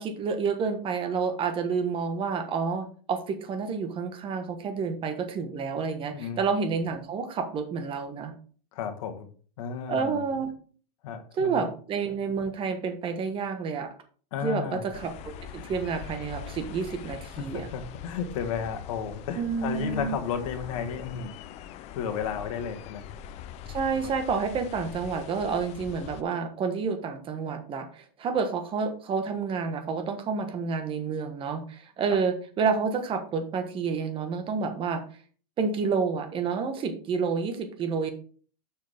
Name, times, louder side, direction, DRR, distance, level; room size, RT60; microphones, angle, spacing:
voice 1, 0.0-8.3 9.9-10.5 11.3-13.9 14.4-17.7 19.4-20.2 23.7-35.0 35.6-38.1, right 5 dB, 25° right, 7 dB, 1.4 m, -29 dB
voice 2, 8.7-9.3 9.6-10.2 11.0-11.7 14.3-14.9 17.5-21.3 21.9-23.0 23.9-24.1, left 7 dB, 55° left, 6 dB, 1.5 m, -33 dB
sound 1, 14.9-26.2, left 9 dB, 30° left, 0.6 m, -42 dB
7.3 x 5.9 x 3.5 m, 0.42 s
hypercardioid pair, 120°, 21 cm